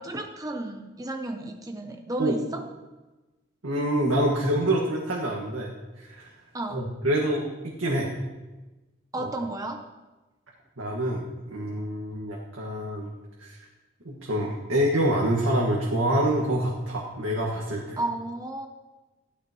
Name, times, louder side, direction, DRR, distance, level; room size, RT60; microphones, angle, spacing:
voice 1, 0.0-2.6 6.5-6.9 9.1-9.9 18.0-18.7, right 2 dB, 15° right, 4 dB, 0.7 m, -32 dB
voice 2, 3.6-5.7 6.0-6.3 6.7-8.1 9.2-9.3 10.8-13.1 13.4-13.7 14.1-18.0, right 1 dB, 85° right, -3 dB, 1.8 m, -26 dB
15.5 x 13.0 x 3.1 m, 1.1 s
head